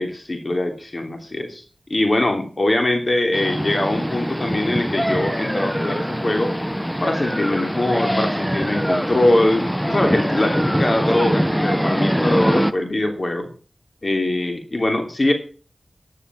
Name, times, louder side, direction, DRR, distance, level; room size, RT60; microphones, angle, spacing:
voice 1, 0.0-1.6 1.9-6.5 7.0-13.5 14.0-15.3, left 1 dB, 50° left, 5 dB, 3.3 m, -22 dB
sound 1, 3.3-12.7, equal, ahead, 1.0 m, -23 dB
11.0 x 11.0 x 7.6 m, 0.39 s
cardioid pair, 45°, 0 cm